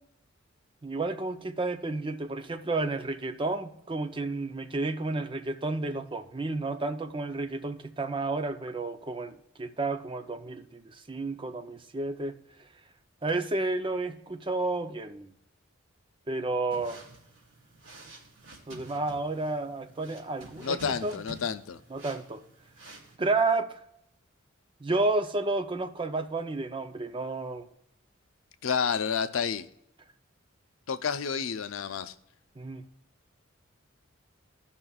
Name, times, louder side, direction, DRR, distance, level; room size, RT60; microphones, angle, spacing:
voice 1, 0.8-12.4 13.2-15.3 16.3-17.0 18.7-21.2 21.9-22.4 23.2-23.8 24.8-27.7 32.6-32.8, right 3 dB, 25° right, 0.5 m, -31 dB
sound 1, 16.7-23.2, right 2 dB, 65° right, 2.3 m, -49 dB
voice 2, 20.6-21.8 28.6-29.7 30.9-32.1, left 6 dB, 75° left, 0.5 m, -30 dB
15.0 x 5.6 x 2.3 m
head